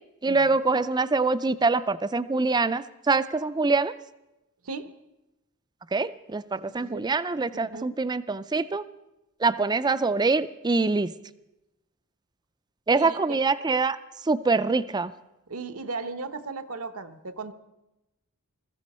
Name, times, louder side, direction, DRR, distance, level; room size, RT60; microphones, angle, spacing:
voice 1, 0.2-3.9 5.9-8.8 9.4-11.1 12.9-14.0 14.3-15.1, right 3 dB, 20° right, 15 dB, 0.4 m, -24 dB
voice 2, 6.7-7.0 7.5-8.0 12.9-13.4 15.5-17.5, right 3 dB, 70° right, 10 dB, 1.0 m, -37 dB
21.5 x 14.0 x 4.3 m, 0.96 s
head